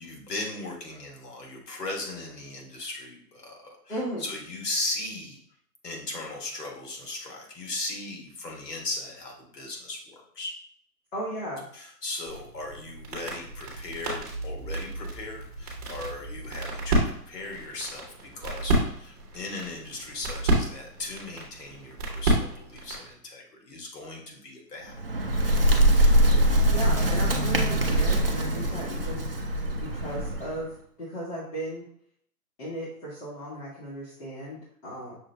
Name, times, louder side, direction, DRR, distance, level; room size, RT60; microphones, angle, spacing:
voice 1, 0.0-5.4 5.8-10.5 11.7-25.0, left 2 dB, 75° left, 0 dB, 1.4 m, -37 dB
voice 2, 3.9-4.2 11.1-11.7 26.7-29.2 29.7-30.7 31.0-31.8 32.6-35.1, equal, 45° left, -8 dB, 1.7 m, -35 dB
sound 1, 12.3-23.1, right 1 dB, 25° right, 1.1 m, -31 dB
Bird, 24.8-30.6, right 1 dB, 40° right, 0.4 m, -23 dB
6.2 x 2.6 x 3.3 m, 0.64 s
hypercardioid pair, 165°, 48 cm